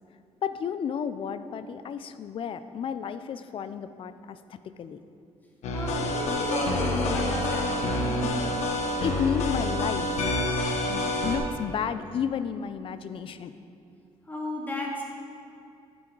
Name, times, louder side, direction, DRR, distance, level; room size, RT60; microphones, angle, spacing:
voice 1, 0.4-5.0 8.8-10.2 10.9-13.5, left 7 dB, 50° left, 12 dB, 0.5 m, -32 dB
sound 1, 5.6-11.4, left 1 dB, 85° left, 1.4 m, -27 dB
voice 2, 5.7-8.4 14.2-15.0, left 1 dB, 15° left, -3 dB, 2.2 m, -34 dB
11.0 x 9.7 x 4.0 m, 2.5 s
cardioid pair, 105°, 11 cm